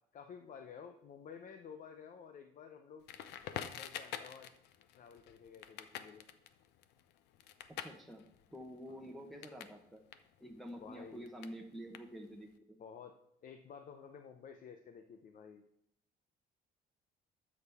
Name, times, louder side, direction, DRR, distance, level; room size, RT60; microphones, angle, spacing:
voice 1, 0.1-3.1 3.6-4.5 4.9-6.2 8.9-9.1 10.8-11.3 12.8-15.6, left 7 dB, 50° left, 6 dB, 0.8 m, -52 dB
Crackle, 3.1-9.8 10.1-12.5, left 10 dB, 90° left, 0.7 m, -47 dB
voice 2, 7.8-8.2 8.5-10.0 10.4-12.8, equal, ahead, 0 dB, 1.2 m, -48 dB
12.5 x 7.3 x 3.6 m, 0.76 s
cardioid pair, 110°, 17 cm